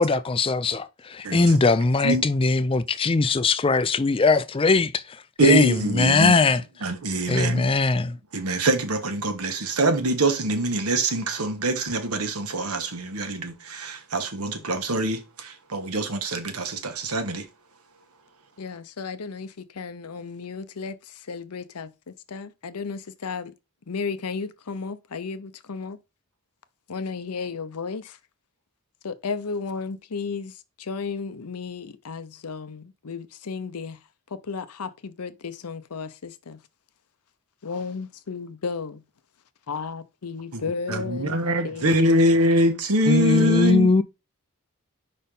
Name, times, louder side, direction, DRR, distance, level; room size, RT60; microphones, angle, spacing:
voice 1, 0.0-5.2 5.4-6.6 7.3-8.2 43.1-44.0, left 3 dB, 25° left, 0.4 m, -20 dB
voice 2, 1.2-1.6 2.0-2.3 5.4-6.4 6.8-7.7 8.3-17.5 40.5-40.6 40.9-43.9, right 1 dB, 85° right, 1.3 m, -24 dB
voice 3, 18.6-23.5 23.9-26.0 26.9-28.2 29.0-34.0 34.3-36.6 37.6-39.0 39.7-41.4 41.6-42.2 43.4-43.8, left 5 dB, 90° left, 0.7 m, -34 dB
5.2 x 4.3 x 5.3 m
head